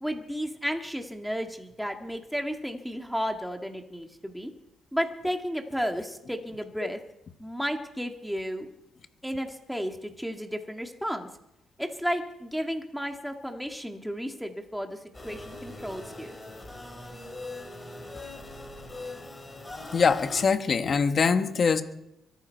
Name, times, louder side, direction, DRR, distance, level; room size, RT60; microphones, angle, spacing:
voice 1, 0.0-4.5 4.9-7.0 7.4-8.7 9.2-11.3 11.8-16.4, equal, ahead, 4 dB, 1.8 m, -33 dB
sound 1, 15.1-20.4, left 2 dB, 20° left, 5.2 m, -41 dB
voice 2, 19.9-21.8, left 5 dB, 45° left, 8 dB, 1.5 m, -23 dB
24.0 x 11.5 x 4.6 m, 0.86 s
cardioid pair, 90°, 0 cm